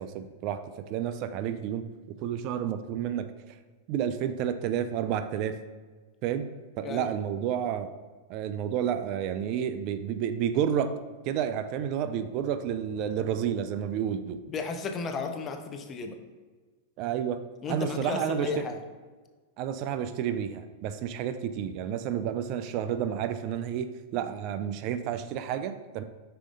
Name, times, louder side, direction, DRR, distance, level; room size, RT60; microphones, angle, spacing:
voice 1, 0.0-3.3 3.9-5.6 6.2-6.5 6.8-7.9 8.3-11.0 11.2-14.4 17.0-17.4 17.7-18.7 19.6-26.0, right 9 dB, 50° right, 11 dB, 0.4 m, -30 dB
voice 2, 14.5-16.2 17.6-18.8, left 4 dB, 30° left, 6 dB, 0.7 m, -34 dB
5.7 x 4.8 x 3.8 m, 1.4 s
hypercardioid pair, 110°, 0 cm